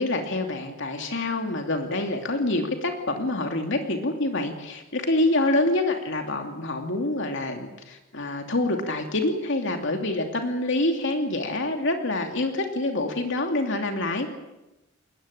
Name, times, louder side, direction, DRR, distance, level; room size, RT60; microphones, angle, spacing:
voice 1, 0.0-14.3, left 2 dB, 65° left, 4 dB, 2.8 m, -26 dB
21.5 x 19.5 x 9.0 m, 0.97 s
head